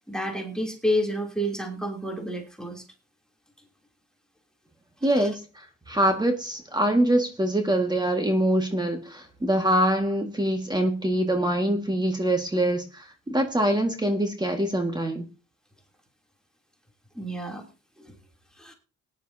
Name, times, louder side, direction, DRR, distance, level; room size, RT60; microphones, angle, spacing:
voice 1, 0.1-2.8 5.2-5.3 17.1-17.6 18.0-18.1 18.6-18.7, equal, ahead, 2 dB, 3.0 m, -30 dB
voice 2, 5.0-15.3, right 1 dB, 15° right, 4 dB, 1.8 m, -24 dB
19.5 x 10.5 x 2.8 m, 0.30 s
cardioid pair, 90°, 30 cm